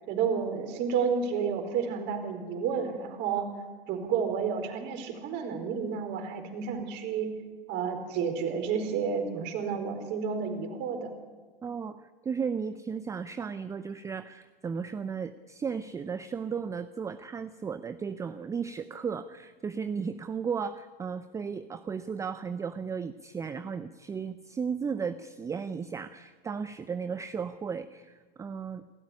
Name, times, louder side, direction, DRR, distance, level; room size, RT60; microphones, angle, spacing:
voice 1, 0.1-3.5 3.9-7.3 7.7-11.1, right 6 dB, 35° right, 5 dB, 4.6 m, -31 dB
voice 2, 11.6-28.8, right 6 dB, 10° right, 12 dB, 0.6 m, -35 dB
27.5 x 13.5 x 9.9 m, 1.4 s
figure-of-eight pair, 100°, 30 cm